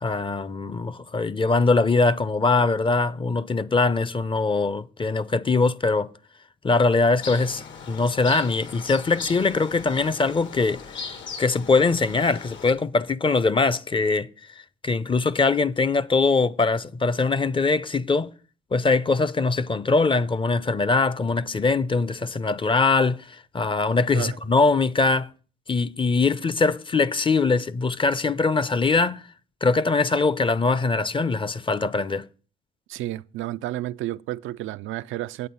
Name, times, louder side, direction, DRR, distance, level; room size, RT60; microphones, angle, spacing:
voice 1, 0.0-6.1 6.6-14.3 14.8-18.3 18.7-25.3 25.7-29.2 29.6-32.2, left 3 dB, 25° left, 0.6 m, -22 dB
sound 1, 7.2-12.7, left 5 dB, 70° left, 1.7 m, -38 dB
voice 2, 32.9-35.5, right 15 dB, 85° right, 0.4 m, -31 dB
9.5 x 8.5 x 5.5 m
cardioid pair, 90°, 20 cm